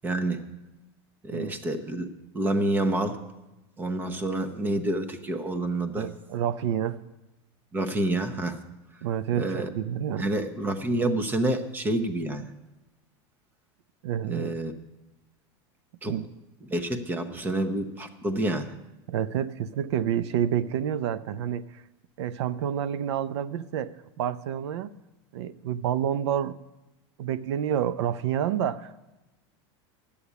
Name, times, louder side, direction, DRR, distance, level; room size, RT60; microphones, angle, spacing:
voice 1, 0.0-0.4 1.2-2.1 2.3-3.2 3.8-6.1 7.7-8.6 9.3-9.7 10.2-12.5 14.3-14.7 16.0-16.1 16.7-18.7, right 1 dB, 15° right, 9 dB, 0.8 m, -28 dB
voice 2, 6.0-7.0 9.0-10.3 14.0-14.6 16.0-16.3 19.1-21.7 22.2-23.9 24.2-24.9 25.3-26.6 27.2-29.0, right 9 dB, 85° right, 14 dB, 0.6 m, -28 dB
11.5 x 8.5 x 8.1 m, 1.0 s
supercardioid pair, 155°, 14 cm